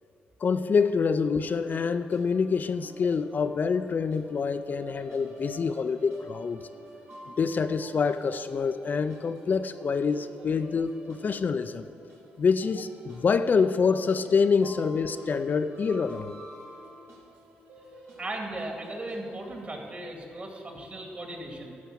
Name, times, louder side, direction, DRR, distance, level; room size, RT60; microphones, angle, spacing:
voice 1, 0.4-6.6 7.4-11.9 12.4-16.4, left 5 dB, 45° left, 10 dB, 0.4 m, -26 dB
sound 1, 1.2-20.0, right 1 dB, 75° right, 2.1 m, -49 dB
voice 2, 18.2-21.7, right 1 dB, 40° right, 1 dB, 2.3 m, -37 dB
12.5 x 5.8 x 7.3 m, 2.6 s
cardioid pair, 70°, 4 cm